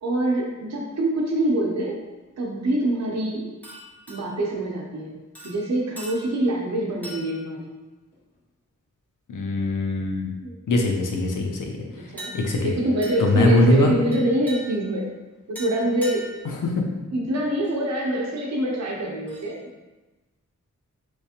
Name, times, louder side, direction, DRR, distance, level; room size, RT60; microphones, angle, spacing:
voice 1, 0.0-2.0 2.4-3.5 4.1-5.2 5.4-7.7 10.4-10.6 11.9-12.3 12.6-15.1 15.5-16.2 17.1-19.6, right 1 dB, 60° right, -2 dB, 0.7 m, -25 dB
sound 1, 3.6-4.5 5.4-6.6 7.0-7.6 8.1-8.4 12.2-12.7 13.0-13.5 14.1-15.0 15.6-16.5 17.6-17.7 19.3-19.5, equal, 5° left, 1.3 m, -41 dB
voice 2, 9.3-10.3 10.7-12.7 13.2-13.9 16.6-16.8, left 2 dB, 85° left, 1 dB, 0.6 m, -22 dB
3.2 x 3.2 x 2.8 m, 1.1 s
wide cardioid pair, 70°, 30 cm